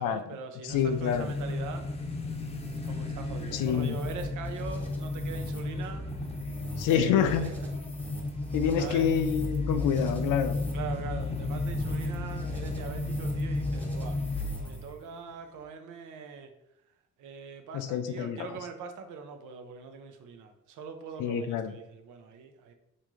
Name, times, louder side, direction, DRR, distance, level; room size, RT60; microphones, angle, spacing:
voice 1, 0.0-1.9 2.8-6.1 6.8-7.5 8.1-8.3 8.8-9.1 10.7-14.2 14.6-16.5 17.2-22.7, right 5 dB, 80° right, 6 dB, 0.6 m, -42 dB
voice 2, 0.6-1.3 3.5-4.0 6.8-7.5 8.5-10.5 17.7-18.6 21.2-21.7, left 8 dB, 85° left, 9 dB, 0.5 m, -27 dB
sound 1, 0.7-14.9, left 2 dB, 20° left, 0.6 m, -34 dB
sound 2, 1.1-15.0, left 1 dB, 5° left, 0.9 m, -43 dB
3.1 x 2.6 x 3.5 m, 0.85 s
cardioid pair, 90°, 30 cm